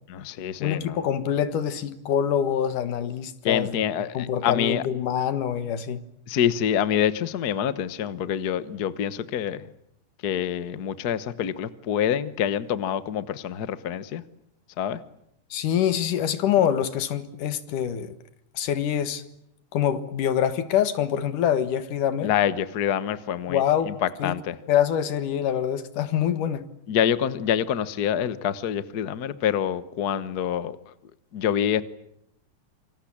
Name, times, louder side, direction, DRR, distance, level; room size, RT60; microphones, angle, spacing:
voice 1, 0.1-1.0 3.4-4.8 6.3-9.6 10.2-14.2 14.8-15.0 22.2-24.6 26.9-30.8 31.3-31.8, left 9 dB, 65° left, 0.9 m, -26 dB
voice 2, 0.6-3.8 4.1-6.0 15.5-18.2 18.5-19.2 19.7-22.3 23.5-23.9 24.2-24.3 24.7-26.7, left 9 dB, 90° left, 3.1 m, -25 dB
27.0 x 25.0 x 8.7 m
omnidirectional pair, 3.5 m